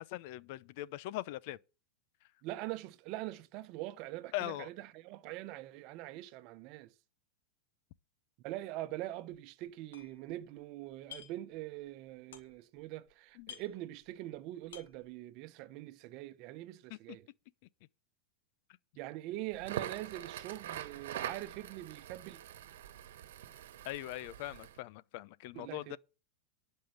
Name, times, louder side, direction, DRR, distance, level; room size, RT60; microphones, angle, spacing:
voice 1, 0.0-1.6 4.3-4.7 13.4-13.5 16.9-17.2 23.8-26.0, left 16 dB, 60° left, 0.6 m, -41 dB
voice 2, 2.4-6.9 8.4-17.3 19.0-22.4 25.5-26.0, right 16 dB, 50° right, 0.9 m, -43 dB
sound 1, 9.1-9.4 9.6-10.6 10.9-11.5 11.8-12.8 13.1-13.2 13.4-14.3 14.6-15.1, left 9 dB, 85° left, 2.7 m, -52 dB
Crackle, 19.5-24.8, right 11 dB, 80° right, 1.2 m, -44 dB
11.5 x 5.5 x 8.9 m
supercardioid pair, 130°, 0 cm